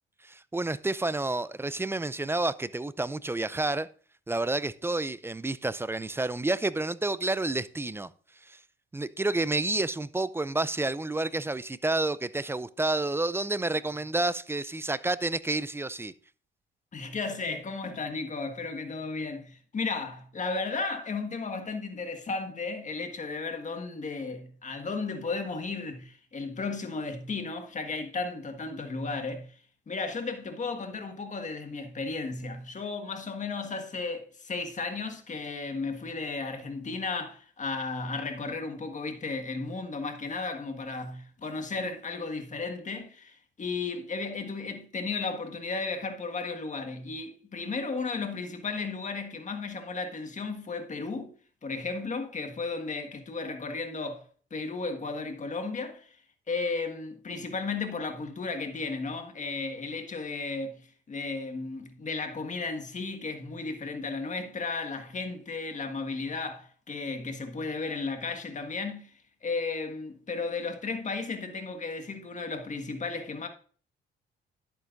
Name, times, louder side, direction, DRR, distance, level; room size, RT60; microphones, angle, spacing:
voice 1, 0.2-3.9 4.3-8.1 8.4-8.6 8.9-16.1, right 2 dB, 10° right, 0.4 m, -29 dB
voice 2, 16.9-29.6 29.9-51.3 51.6-54.2 54.5-56.2 56.5-69.1 69.4-73.5, left 4 dB, 40° left, 1.6 m, -34 dB
11.0 x 8.5 x 2.6 m
cardioid pair, 90°, 20 cm